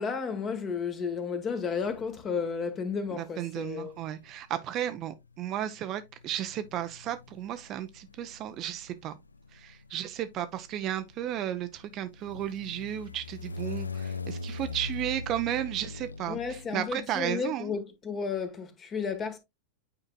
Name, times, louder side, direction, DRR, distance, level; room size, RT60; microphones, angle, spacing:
voice 1, 0.0-4.0 16.3-19.4, left 5 dB, 25° left, 1.3 m, -33 dB
sound 1, 1.8-2.5 3.5-17.2, left 4 dB, 80° left, 0.4 m, -42 dB
voice 2, 3.1-9.1 9.5-17.7, right 11 dB, 35° right, 0.6 m, -34 dB
8.8 x 4.9 x 2.2 m
figure-of-eight pair, 90°, 0 cm